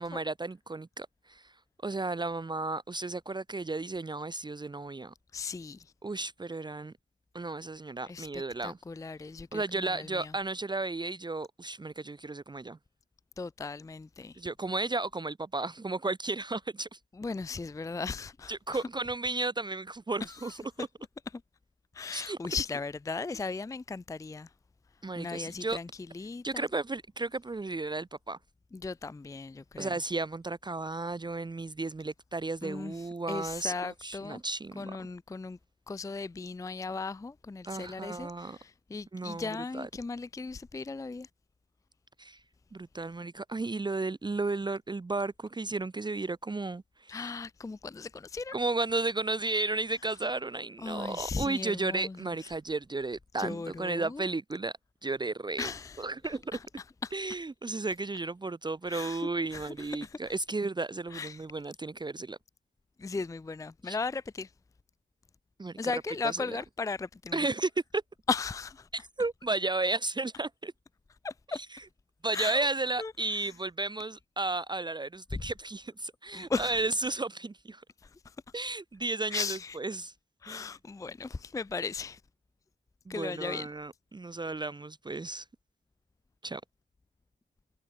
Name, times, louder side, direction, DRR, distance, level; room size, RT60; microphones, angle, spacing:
voice 1, 0.0-1.5 1.8-5.1 6.0-6.9 7.3-8.8 9.5-12.8 14.4-17.0 18.5-20.9 22.1-22.4 25.0-25.8 26.4-28.4 29.8-34.9 37.7-38.6 39.1-39.9 42.2-42.4 42.7-47.3 48.5-54.7 55.0-55.7 56.0-56.6 57.1-62.4 63.8-64.0 65.6-65.9 66.2-66.5 67.3-68.0 68.9-70.7 71.7-71.8 72.2-77.8 78.5-80.1 80.5-80.7 83.1-85.4 86.4-86.6, right 3 dB, 25° right, 0.8 m, -33 dB
voice 2, 5.3-5.9 8.1-10.3 13.4-14.4 17.2-18.8 20.2-20.9 21.9-24.5 25.2-25.9 26.1-26.6 28.7-30.0 32.6-34.4 34.8-35.6 35.9-41.3 47.1-48.6 50.8-52.5 53.4-54.2 55.6-56.7 57.0-57.1 58.9-60.2 61.1-61.4 63.0-64.5 65.8-67.5 68.3-68.9 71.2-71.6 72.3-72.7 73.0-73.5 75.3-75.4 76.3-76.8 78.0-78.3 79.3-79.8 80.4-82.2 83.1-83.7, left 4 dB, 20° left, 0.4 m, -37 dB
cardioid pair, 85°, 18 cm